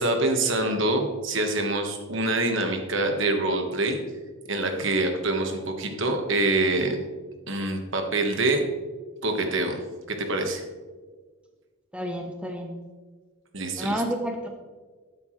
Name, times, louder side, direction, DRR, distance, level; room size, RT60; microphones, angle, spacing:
voice 1, 0.0-4.0 4.5-7.0 7.5-8.6 9.2-9.8 10.1-10.6 13.5-14.0, right 2 dB, 60° right, 4 dB, 1.5 m, -25 dB
voice 2, 11.9-12.8 13.8-14.5, equal, 5° right, 3 dB, 0.8 m, -30 dB
12.0 x 9.9 x 3.2 m, 1.4 s
head